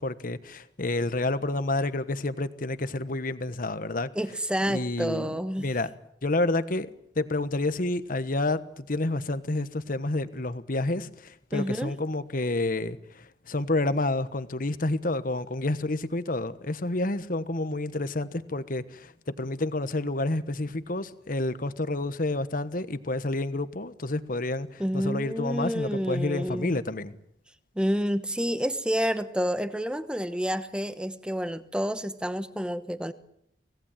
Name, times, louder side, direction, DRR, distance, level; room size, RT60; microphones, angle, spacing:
voice 1, 0.0-4.1 4.7-5.9 6.2-6.9 7.1-27.1, left 2 dB, 50° left, 1.3 m, -29 dB
voice 2, 4.2-5.7 11.5-11.9 24.8-26.8 27.7-33.1, equal, 5° right, 1.2 m, -29 dB
25.5 x 18.0 x 9.1 m
head